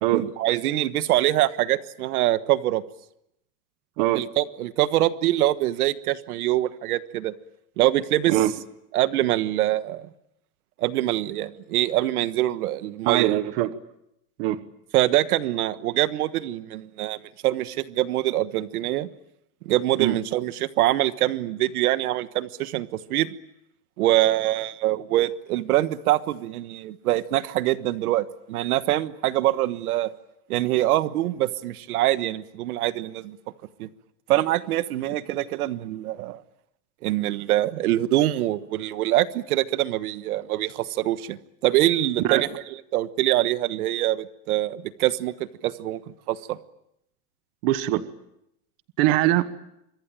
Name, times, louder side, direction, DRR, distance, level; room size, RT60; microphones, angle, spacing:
voice 1, 0.1-2.8 4.1-7.3 7.8-8.4 8.9-10.1 10.8-13.4 14.9-19.1 19.6-23.3 24.0-30.1 30.5-33.4 33.8-33.9 34.3-36.4 37.0-42.5 42.9-45.3 45.6-46.0 46.3-46.6, right 14 dB, 65° right, 13 dB, 1.4 m, -24 dB
voice 2, 13.0-13.7 14.4-14.6 20.0-20.2 42.2-42.5 47.6-48.0 49.0-49.5, right 15 dB, 35° right, 12 dB, 1.2 m, -22 dB
27.0 x 24.5 x 8.9 m, 0.82 s
supercardioid pair, 175°, 48 cm